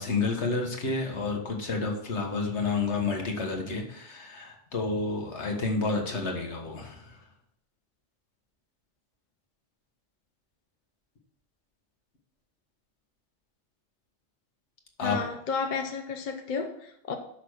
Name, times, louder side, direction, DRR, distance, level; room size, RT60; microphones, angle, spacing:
voice 1, 0.0-7.2 15.0-15.2, left 3 dB, 65° left, 2 dB, 1.7 m, -30 dB
voice 2, 15.0-17.2, left 5 dB, 45° left, 5 dB, 0.8 m, -32 dB
6.0 x 5.9 x 6.4 m, 0.74 s
omnidirectional pair, 1.3 m